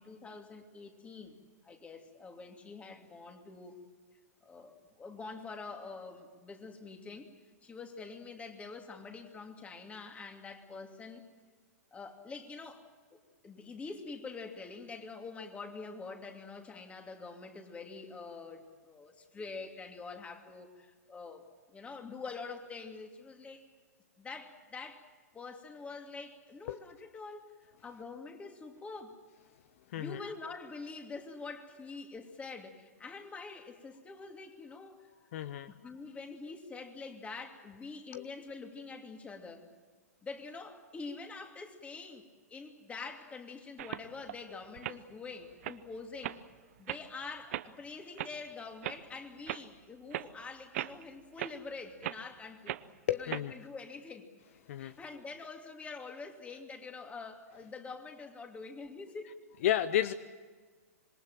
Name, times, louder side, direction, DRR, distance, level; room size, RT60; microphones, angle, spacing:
voice 1, 0.0-1.4 1.6-3.8 4.4-7.3 7.6-11.3 11.9-12.8 13.1-13.2 13.4-21.4 21.7-23.6 24.2-25.1 25.3-29.2 30.0-35.1 35.7-39.7 40.2-46.4 46.8-52.8 53.1-59.4, left 4 dB, 15° left, 4 dB, 2.8 m, -46 dB
voice 2, 29.9-30.2 35.3-35.7 38.1-38.2 53.1-53.5 54.7-55.0 59.6-60.1, left 12 dB, 55° left, 14 dB, 0.8 m, -31 dB
sound 1, 43.8-44.3 44.8-45.0 45.5-45.8 46.2-46.4 46.9-47.0 47.5-47.7 48.2-48.3 48.8-49.0 49.5-49.7 50.1-50.3 50.7-51.0 51.4-51.5 52.0-52.2 52.7-52.8 53.3-53.4, right 14 dB, 55° right, 0.9 m, -37 dB
26.5 x 21.5 x 7.6 m, 1.5 s
hypercardioid pair, 115°, 9 cm